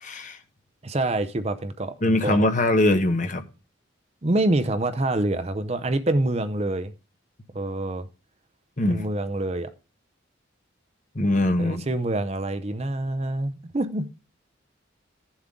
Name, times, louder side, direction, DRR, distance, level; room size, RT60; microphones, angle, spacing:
voice 1, 0.0-0.4 2.0-3.4 8.8-9.0 11.1-11.8, left 1 dB, 40° left, 1.1 m, -22 dB
voice 2, 0.8-1.9 2.2-2.4 4.2-6.9 7.5-8.1 8.9-9.7 11.6-14.1, right 2 dB, 30° right, 0.6 m, -26 dB
15.0 x 7.3 x 3.8 m
head